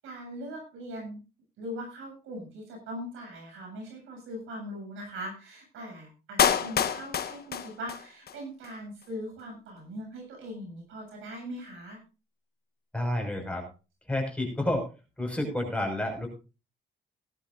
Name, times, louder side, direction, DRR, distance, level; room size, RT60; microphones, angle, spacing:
voice 1, 0.0-1.2 1.6-12.0, equal, 85° right, 2 dB, 7.9 m, -40 dB
Clapping, 6.4-8.4 8.6-8.7, left 8 dB, 50° left, 1.2 m, -27 dB
voice 2, 12.9-13.7 14.1-14.9 15.2-16.3, left 1 dB, 5° left, 2 dB, 6.1 m, -30 dB
18.5 x 11.5 x 2.7 m, 0.31 s
cardioid pair, 90°, 20 cm